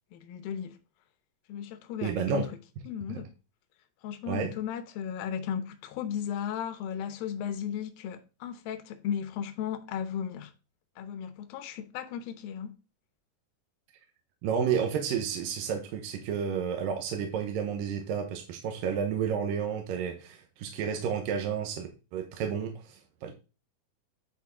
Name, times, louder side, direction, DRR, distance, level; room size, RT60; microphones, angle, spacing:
voice 1, 0.1-0.8 1.5-2.5 2.9-3.3 4.0-10.5 11.0-12.8, left 8 dB, 85° left, 2.6 m, -35 dB
voice 2, 2.0-2.4 4.3-4.5 14.4-23.3, right 7 dB, 80° right, 2.5 m, -31 dB
9.8 x 4.5 x 3.6 m
omnidirectional pair, 4.1 m